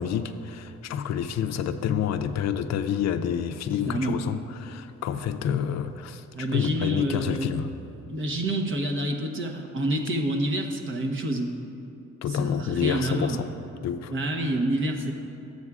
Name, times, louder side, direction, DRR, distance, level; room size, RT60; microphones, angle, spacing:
voice 1, 0.0-7.7 12.2-13.5 13.8-14.1, left 8 dB, 60° left, 9 dB, 0.4 m, -28 dB
voice 2, 3.8-4.2 6.3-7.5 8.1-11.5 12.3-13.4 14.1-15.1, right 1 dB, 40° right, 2 dB, 1.0 m, -28 dB
12.0 x 8.0 x 2.4 m, 2.8 s
cardioid pair, 90°, 30 cm